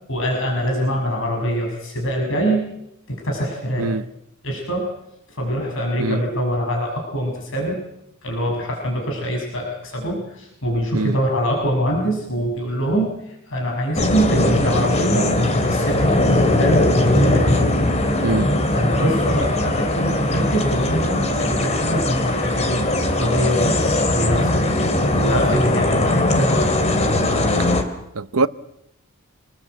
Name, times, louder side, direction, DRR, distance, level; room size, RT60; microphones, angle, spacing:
voice 1, 0.1-2.6 3.1-3.9 4.4-4.9 5.3-7.8 8.2-17.6 18.7-23.8 24.1-24.8 25.2-26.8, equal, 65° left, 6.5 m, -24 dB
sound 1, 13.9-27.8, left 1 dB, 35° left, 2.7 m, -19 dB
voice 2, 28.1-28.5, right 3 dB, 80° right, 0.9 m, -22 dB
27.5 x 20.0 x 8.0 m
head